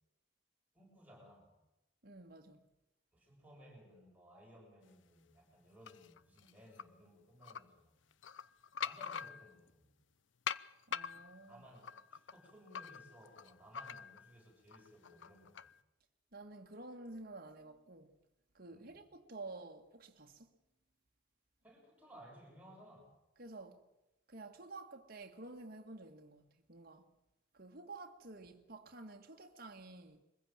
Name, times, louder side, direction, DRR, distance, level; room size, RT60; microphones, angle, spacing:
voice 1, 0.7-1.5 3.1-8.0 8.8-10.0 11.0-11.1 11.5-15.7 18.7-19.0 21.6-23.1, equal, 10° right, 7.2 m, -59 dB
voice 2, 2.0-2.7 10.9-11.6 16.3-18.1 18.6-20.5 23.4-23.8 24.3-27.1 27.5-30.2, right 2 dB, 55° right, 1.9 m, -51 dB
sound 1, 5.9-6.8 7.4-7.6 8.1-9.7 10.5-14.3 14.7-15.8, left 7 dB, 85° left, 0.7 m, -44 dB
23.0 x 15.5 x 8.9 m
head